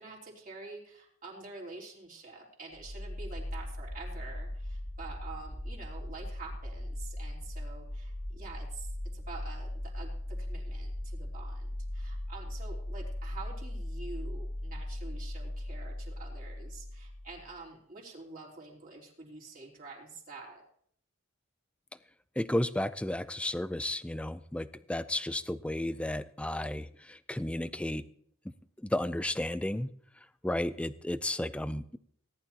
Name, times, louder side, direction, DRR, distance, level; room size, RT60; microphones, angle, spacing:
voice 1, 0.0-20.6, right 3 dB, 40° right, -3 dB, 3.6 m, -47 dB
sound 1, 2.7-17.5, left 1 dB, 65° left, 2.2 m, -39 dB
voice 2, 22.4-28.1 28.4-28.5 28.8-29.9 30.4-32.0, left 1 dB, 5° left, 14 dB, 0.4 m, -33 dB
18.0 x 11.0 x 2.9 m, 0.63 s
head